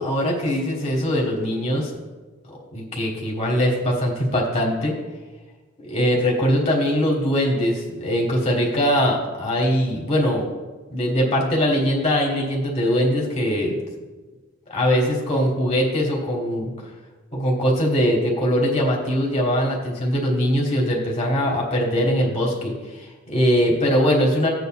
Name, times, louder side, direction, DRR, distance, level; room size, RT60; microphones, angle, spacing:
voice 1, 0.0-1.9 2.5-4.9 5.8-10.5 10.9-13.8 14.7-16.7 17.3-24.5, equal, 30° left, -2 dB, 1.4 m, -21 dB
16.5 x 8.0 x 2.3 m, 1.3 s
head